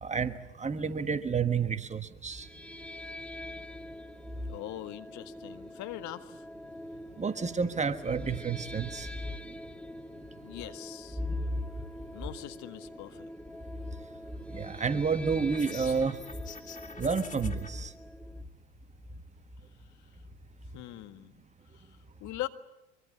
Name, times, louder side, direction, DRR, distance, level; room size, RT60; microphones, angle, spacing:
voice 1, 0.0-2.5 7.2-9.1 14.5-16.2 17.0-17.9, right 5 dB, 20° right, 1.6 m, -30 dB
sound 1, 2.3-18.4, left 1 dB, 5° left, 1.2 m, -46 dB
voice 2, 4.5-6.5 10.4-11.2 12.1-13.3 19.8-20.1 20.7-21.4 21.7-22.5, left 15 dB, 50° left, 1.8 m, -42 dB
sound 2, 15.5-17.7, left 5 dB, 20° left, 3.1 m, -46 dB
24.5 x 24.0 x 8.7 m
hypercardioid pair, 85°, 37 cm